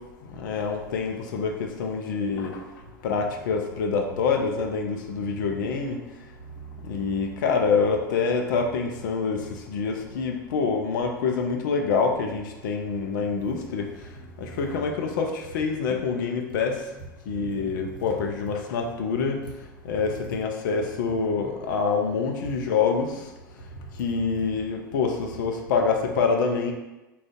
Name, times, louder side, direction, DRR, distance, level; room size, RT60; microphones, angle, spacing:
voice 1, 0.4-2.6 3.0-6.0 6.9-13.9 14.4-16.8 17.3-19.4 19.8-23.1 24.0-26.7, left 5 dB, 65° left, 3 dB, 0.4 m, -26 dB
voice 2, 5.3-5.7 6.4-7.2 9.4-9.5 9.9-10.3 12.9-15.1 16.5-16.6 17.0-18.6 18.8-19.6 20.0-20.5 21.1-21.5 22.4-22.6 23.7-24.1 24.4-24.5, right 3 dB, 85° left, -4 dB, 0.9 m, -43 dB
2.5 x 2.3 x 3.6 m, 1.0 s
hypercardioid pair, 85°, 11 cm